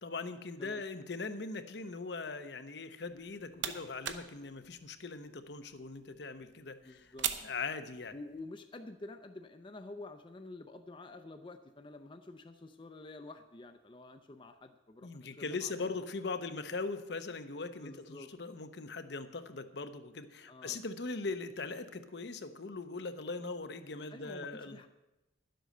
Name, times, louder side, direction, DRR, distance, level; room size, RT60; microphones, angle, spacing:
voice 1, 0.0-7.1 7.4-8.1 15.0-24.8, left 3 dB, 60° left, 9 dB, 0.8 m, -40 dB
sound 1, 3.1-8.4, right 9 dB, 70° right, 0.8 m, -43 dB
voice 2, 6.6-7.3 8.1-16.0 17.8-18.3 20.5-20.8 24.1-24.9, left 2 dB, 25° left, 7 dB, 0.5 m, -49 dB
11.5 x 7.8 x 6.6 m, 1.0 s
head